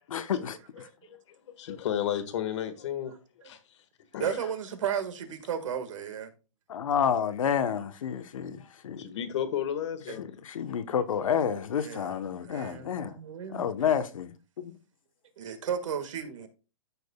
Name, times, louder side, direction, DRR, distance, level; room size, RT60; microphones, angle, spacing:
voice 1, 0.1-0.9 6.7-9.0 10.2-13.2 13.5-14.3 14.6-14.7, left 8 dB, 80° left, 1.1 m, -29 dB
voice 2, 0.8-3.1 3.4-3.8 4.1-4.4 9.0-10.3, left 10 dB, 60° left, 1.6 m, -33 dB
voice 3, 4.2-6.3 10.1-10.2 11.8-12.1 12.4-13.7 15.4-16.5, right 8 dB, 70° right, 1.8 m, -34 dB
14.0 x 6.2 x 2.3 m
hypercardioid pair, 155°, 17 cm